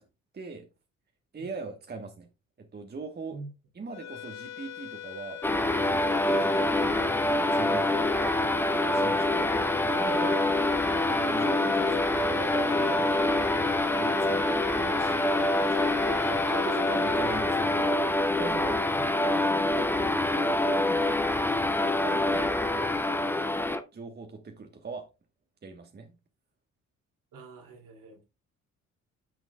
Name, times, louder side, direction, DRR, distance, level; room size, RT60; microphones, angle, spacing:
voice 1, 0.3-0.7 1.3-2.3 2.6-3.4 3.7-5.4 5.7-8.4 8.8-13.7 14.0-14.4 14.7-18.0 18.4-18.8 19.1-21.1 21.4-22.9 23.9-25.1 25.6-26.1, right 4 dB, 25° right, 1.2 m, -41 dB
sound 1, 3.9-18.5, left 11 dB, 45° left, 0.7 m, -39 dB
sound 2, 5.4-23.8, left 1 dB, 5° left, 0.7 m, -26 dB
voice 2, 27.3-28.2, right 3 dB, 55° right, 2.5 m, -45 dB
10.0 x 6.3 x 2.2 m
figure-of-eight pair, 45°, 39 cm